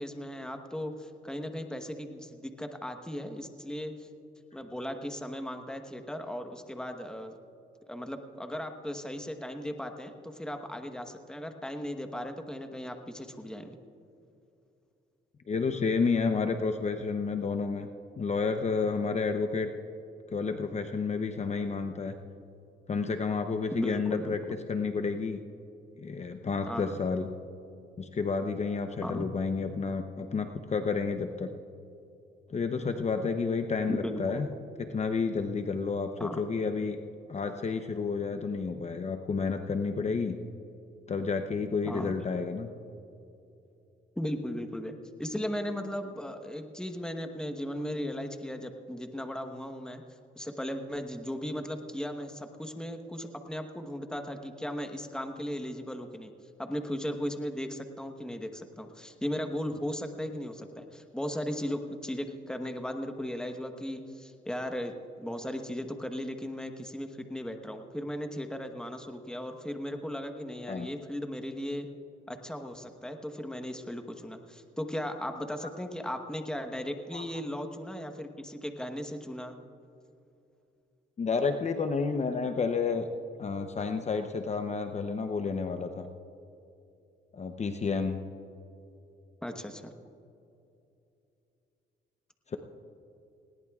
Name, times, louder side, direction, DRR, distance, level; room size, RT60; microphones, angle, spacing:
voice 1, 0.0-4.1 4.5-7.3 7.9-13.8 23.7-24.6 26.7-26.9 29.0-29.3 33.9-34.5 36.2-36.4 41.9-42.2 44.2-50.0 50.3-56.3 56.6-71.9 72.3-79.6 89.4-89.9, equal, 5° left, 6 dB, 1.1 m, -37 dB
voice 2, 15.5-17.9 18.2-19.7 20.3-22.1 22.9-24.4 24.7-25.4 26.0-27.3 28.0-31.5 32.5-34.5 34.9-37.0 37.3-40.4 41.1-42.7 70.7-70.9 77.1-77.2 81.2-83.1 83.4-86.1 87.3-88.2 92.5-92.6, left 5 dB, 35° left, 6 dB, 0.7 m, -30 dB
20.0 x 18.0 x 2.4 m, 2.8 s
cardioid pair, 90°, 20 cm